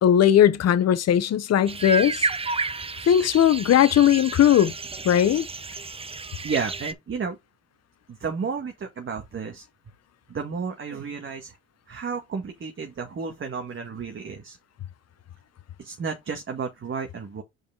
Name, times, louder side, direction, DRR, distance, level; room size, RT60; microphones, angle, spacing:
voice 1, 0.0-2.2 3.1-4.7 5.0-5.5, left 10 dB, 50° left, 1.0 m, -18 dB
sound 1, 1.7-6.9, right 3 dB, 20° right, 0.8 m, -31 dB
voice 2, 6.4-7.4 8.1-9.7 10.3-11.6 11.9-14.6 15.8-17.4, right 5 dB, 40° right, 1.6 m, -32 dB
5.2 x 4.9 x 4.7 m
supercardioid pair, 70°, 32 cm